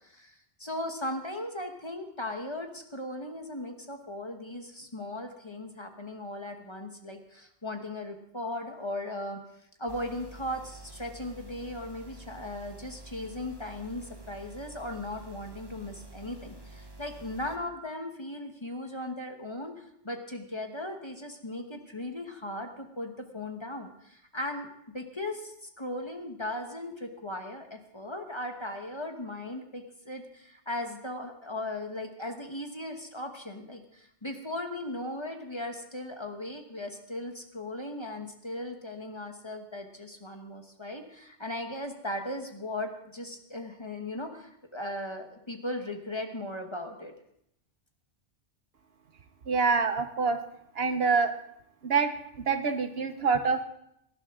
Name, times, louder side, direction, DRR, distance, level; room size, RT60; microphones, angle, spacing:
voice 1, 0.0-9.4 9.8-24.7 24.9-47.1, left 1 dB, 25° left, 4 dB, 1.2 m, -37 dB
sound 1, 9.9-17.6, right 2 dB, 20° right, 1.2 m, -48 dB
voice 2, 49.5-50.4 50.7-51.3 51.8-53.6, right 5 dB, 60° right, 9 dB, 1.0 m, -26 dB
18.5 x 11.5 x 3.7 m, 0.75 s
omnidirectional pair, 1.2 m